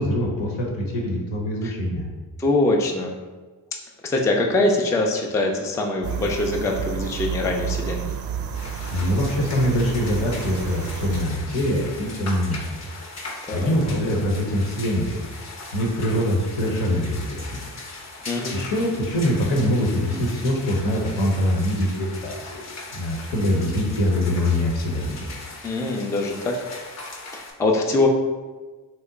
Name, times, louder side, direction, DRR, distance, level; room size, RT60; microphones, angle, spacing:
voice 1, 0.0-2.1 8.9-12.9 13.5-15.2 15.7-17.6 18.1-22.7 22.9-25.3, equal, 70° left, -1 dB, 0.9 m, -24 dB
voice 2, 2.4-3.1 4.0-8.1 13.5-13.7 18.3-18.6 25.6-26.6 27.3-28.1, left 2 dB, 5° left, 1 dB, 0.3 m, -23 dB
sound 1, 6.0-11.2, right 8 dB, 50° right, 0.5 m, -30 dB
sound 2, 8.5-27.5, left 2 dB, 35° left, 0.7 m, -39 dB
2.9 x 2.1 x 3.6 m, 1.3 s
supercardioid pair, 50°, 46 cm